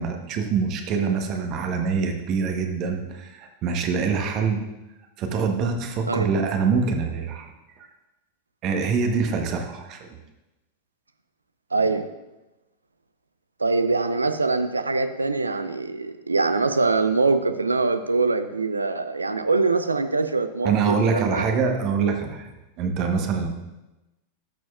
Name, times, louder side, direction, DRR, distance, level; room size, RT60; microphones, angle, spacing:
voice 1, 0.0-4.6 5.2-7.9 8.6-10.1 20.6-22.5 22.8-23.5, right 5 dB, 40° right, 4 dB, 1.0 m, -25 dB
voice 2, 11.7-12.1 13.6-21.5, right 3 dB, 80° right, 10 dB, 0.4 m, -23 dB
12.5 x 6.2 x 2.4 m, 1.0 s
figure-of-eight pair, 90°, 0 cm